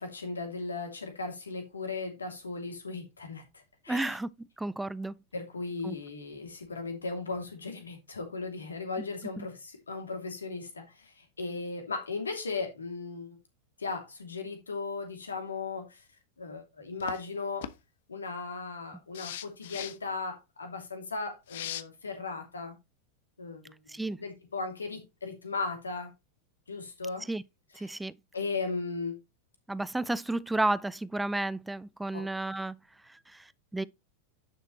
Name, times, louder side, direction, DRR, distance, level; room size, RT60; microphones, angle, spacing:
voice 1, 0.0-4.2 5.3-13.4 13.8-16.0 16.4-17.7 18.1-22.7 23.4-23.8 24.2-26.1 26.7-27.3 27.8-27.9 28.3-29.1 32.1-32.3, left 4 dB, 75° left, 2.8 m, -37 dB
voice 2, 3.9-4.3 4.6-5.1 5.8-5.9 9.4-9.5 23.9-24.2 27.3-27.4 27.8-28.1 29.7-32.8 33.1-33.8, right 2 dB, 5° right, 0.4 m, -32 dB
sound 1, 17.0-17.2 17.6-17.7 19.1-20.0 21.5-21.8, left 11 dB, 55° left, 0.8 m, -38 dB
10.5 x 6.6 x 3.2 m
figure-of-eight pair, 90°, 0 cm